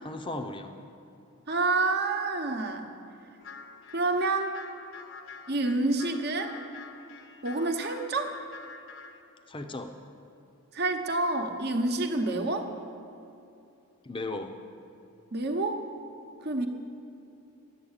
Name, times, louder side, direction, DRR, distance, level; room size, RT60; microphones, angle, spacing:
voice 1, 0.0-0.7 9.5-9.9 14.0-14.5, left 2 dB, 20° left, 7 dB, 0.7 m, -36 dB
voice 2, 1.5-2.9 3.9-4.6 5.5-6.5 7.4-8.4 10.7-12.7 15.3-15.9 16.4-16.7, right 2 dB, 45° right, 5 dB, 1.0 m, -28 dB
sound 1, 3.4-9.2, left 5 dB, 60° left, 0.9 m, -47 dB
12.0 x 8.4 x 8.9 m, 2.8 s
head